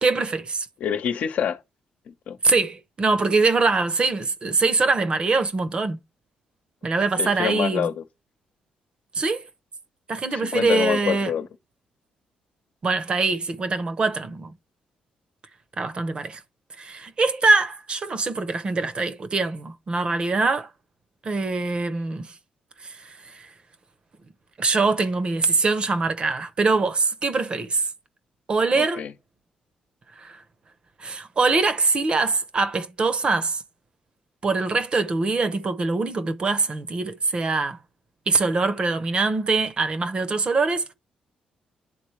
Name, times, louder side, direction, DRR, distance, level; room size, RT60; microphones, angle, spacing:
voice 1, 0.0-0.7 2.4-6.0 6.8-7.9 9.1-9.5 10.1-11.3 12.8-14.5 15.8-16.4 16.8-20.7 21.2-22.3 22.8-23.0 23.3-23.5 24.6-27.8 28.5-29.0 30.2-30.4 31.0-33.6 34.4-37.8 38.3-40.8, right 3 dB, 40° right, 0.8 m, -23 dB
voice 2, 0.8-1.6 2.1-2.4 7.2-8.0 10.3-11.5 28.7-29.1, left 8 dB, 70° left, 0.9 m, -26 dB
10.0 x 3.8 x 3.2 m
cardioid pair, 95°, 3 cm